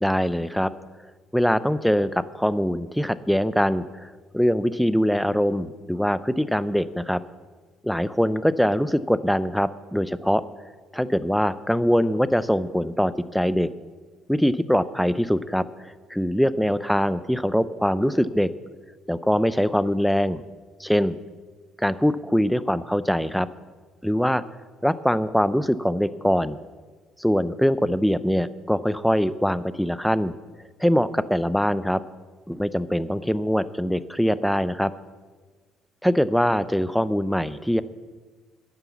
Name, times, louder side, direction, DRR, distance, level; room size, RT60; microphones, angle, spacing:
voice 1, 0.0-0.7 1.3-7.2 7.8-10.4 10.9-13.7 14.3-18.5 19.1-20.4 20.8-21.2 21.8-23.5 24.0-24.4 24.8-26.6 27.2-30.3 30.8-32.0 32.5-34.9 36.0-37.8, equal, ahead, 15 dB, 0.5 m, -23 dB
11.0 x 9.6 x 7.1 m, 1.4 s
cardioid pair, 115°, 0 cm